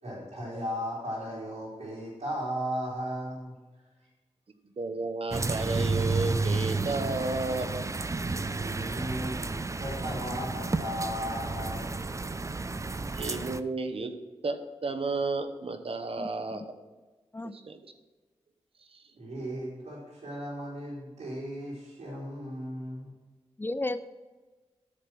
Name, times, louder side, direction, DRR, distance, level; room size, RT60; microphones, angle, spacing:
voice 1, 0.0-3.6 4.0-4.1 8.6-9.5 9.8-12.2 19.2-23.1, equal, 80° right, -9 dB, 3.7 m, -36 dB
voice 2, 4.8-7.8 13.1-14.2 14.4-16.6 17.5-17.9 18.9-19.0, right 3 dB, 55° right, 7 dB, 1.1 m, -32 dB
sound 1, 5.3-13.6, right 3 dB, 25° right, 0.5 m, -31 dB
voice 3, 16.2-16.7 17.3-17.6 23.6-24.1, left 2 dB, 20° left, 13 dB, 0.6 m, -34 dB
9.3 x 6.7 x 6.0 m, 1.3 s
cardioid pair, 50°, 11 cm